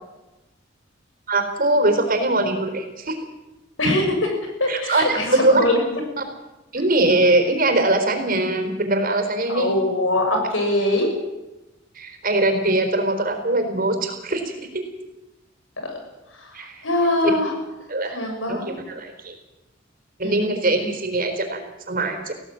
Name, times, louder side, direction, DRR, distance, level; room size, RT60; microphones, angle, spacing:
voice 1, 1.3-3.1 4.7-5.6 6.7-9.7 12.0-14.4 16.5-16.8 17.9-18.2 18.5-19.3 20.2-21.6 21.9-22.3, right 2 dB, 50° right, 5 dB, 4.2 m, -21 dB
voice 2, 3.8-5.8 9.5-11.1 15.8-16.0 16.4-17.5 18.1-18.8 20.2-20.5 20.8-20.9, left 1 dB, 85° left, 3 dB, 6.9 m, -23 dB
19.5 x 16.5 x 9.0 m, 1.0 s
head